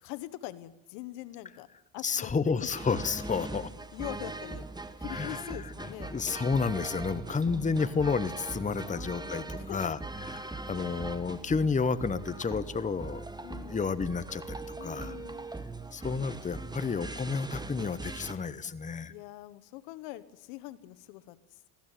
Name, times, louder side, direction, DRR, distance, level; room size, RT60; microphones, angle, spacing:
voice 1, 0.0-1.7 1.9-2.7 3.4-3.5 3.9-4.6 5.0-6.3 8.8-9.8 10.7-11.0 13.4-14.0 14.8-15.5 19.1-21.6, left 16 dB, 85° left, 14 dB, 1.3 m, -43 dB
voice 2, 2.0-3.7 5.1-5.4 6.1-13.2 13.7-15.2 15.9-19.1, left 5 dB, 15° left, 14 dB, 0.9 m, -31 dB
sound 1, 2.6-18.3, right 3 dB, 10° right, 1.3 m, -40 dB
20.0 x 15.0 x 9.1 m, 0.98 s
supercardioid pair, 100°, 44 cm